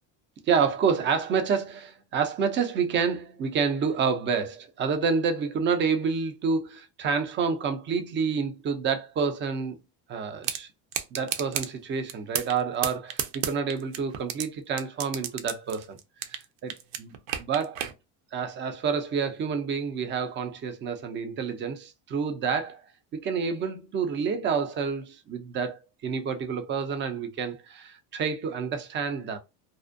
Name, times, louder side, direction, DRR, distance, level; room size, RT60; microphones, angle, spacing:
voice 1, 0.5-9.8 10.1-10.7 11.1-16.0 16.3-17.8 18.3-22.8 23.1-29.4, right 6 dB, 25° right, 0.3 m, -28 dB
sound 1, 10.4-10.6 10.9-11.7 12.1-12.6 12.8-14.4 14.8-16.4 16.7-17.9, right 9 dB, 80° right, 0.6 m, -30 dB
2.5 x 2.1 x 2.4 m
cardioid pair, 115°, 48 cm